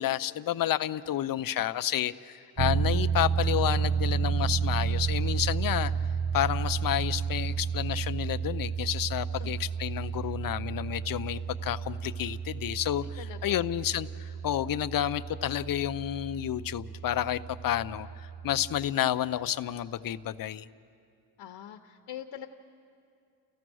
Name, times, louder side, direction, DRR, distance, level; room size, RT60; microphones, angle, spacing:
voice 1, 0.0-5.9 6.3-20.7, left 12 dB, 55° left, 13 dB, 0.6 m, -30 dB
sound 1, 2.6-18.9, right 6 dB, 35° right, 0.6 m, -32 dB
voice 2, 13.0-13.7 21.4-22.5, left 10 dB, 85° left, 4 dB, 0.9 m, -43 dB
30.0 x 15.0 x 6.2 m, 2.5 s
wide cardioid pair, 135°, 42 cm